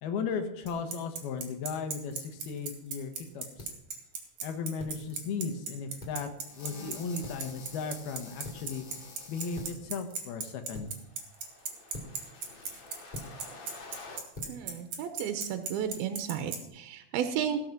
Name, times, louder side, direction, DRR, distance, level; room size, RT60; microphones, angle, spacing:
voice 1, 0.0-3.7 4.4-6.3 6.6-8.9 9.3-10.9, left 5 dB, 85° left, 7 dB, 3.1 m, -36 dB
Bicycle, 0.7-16.6, right 6 dB, 55° right, 3.3 m, -36 dB
sound 1, 2.4-15.8, left 1 dB, 15° left, 1.9 m, -49 dB
sound 2, 6.4-9.7 10.8-14.2, left 3 dB, 55° left, 2.9 m, -49 dB
voice 2, 14.5-17.6, right 8 dB, 85° right, 8 dB, 2.7 m, -33 dB
17.0 x 7.0 x 5.9 m, 0.88 s
omnidirectional pair, 4.3 m